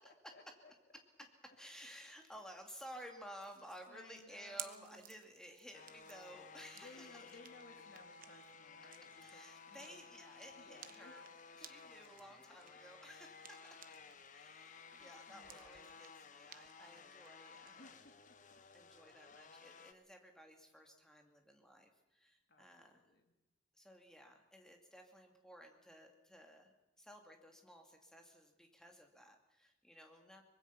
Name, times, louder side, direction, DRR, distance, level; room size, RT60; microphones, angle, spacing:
voice 1, 0.3-0.7 3.9-5.2 6.7-10.0 10.6-11.1 11.6-11.7 14.6-15.9 17.8-18.3 22.5-23.3, left 2 dB, 55° left, 4 dB, 2.8 m, -61 dB
voice 2, 1.6-7.2 9.2-11.3 11.6-13.8 14.2-17.9 18.7-23.1 23.7-30.4, equal, 5° left, 3 dB, 2.4 m, -56 dB
sound 1, 3.4-14.2 14.5-17.7, right 11 dB, 45° right, 1.0 m, -57 dB
sound 2, 5.7-19.9, left 5 dB, 40° left, 1.0 m, -57 dB
24.0 x 20.5 x 5.8 m, 0.96 s
head